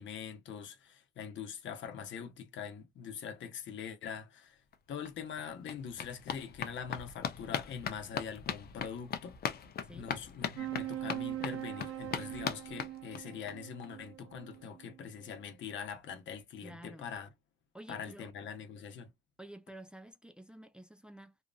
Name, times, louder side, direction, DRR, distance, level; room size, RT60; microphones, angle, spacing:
voice 1, 0.0-4.6 4.9-9.4 9.9-17.3 17.9-19.1, left 7 dB, 70° left, 0.9 m, -43 dB
sound 1, 4.7-4.8 5.0-13.5 13.8-13.9 14.2-14.3 14.5-14.6, left 7 dB, 50° left, 0.6 m, -40 dB
sound 2, 10.6-15.4, right 12 dB, 85° right, 0.6 m, -42 dB
voice 2, 16.6-17.1 17.7-18.3 19.4-21.4, right 1 dB, 5° right, 0.5 m, -50 dB
2.9 x 2.5 x 2.3 m
cardioid pair, 90°, 20 cm